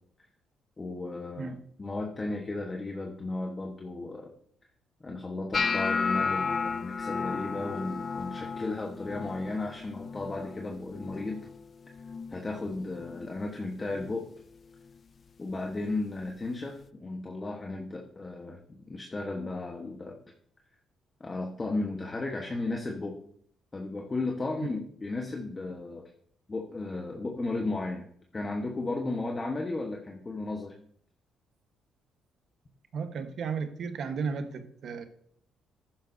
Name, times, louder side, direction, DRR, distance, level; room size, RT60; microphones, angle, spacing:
voice 1, 0.8-1.5 1.8-4.3 5.0-11.5 12.3-14.3 15.4-18.6 18.9-20.1 21.2-23.2 23.7-26.0 26.5-28.1 28.3-30.7, left 2 dB, 25° left, 1 dB, 1.2 m, -34 dB
sound 1, 5.5-11.6 11.9-12.4 12.8-13.3 13.9-14.1 15.9-16.0, left 5 dB, 40° left, 0.3 m, -33 dB
voice 2, 32.9-35.0, right 5 dB, 65° right, 8 dB, 1.2 m, -34 dB
11.5 x 10.0 x 2.7 m, 0.63 s
cardioid pair, 90°, 0 cm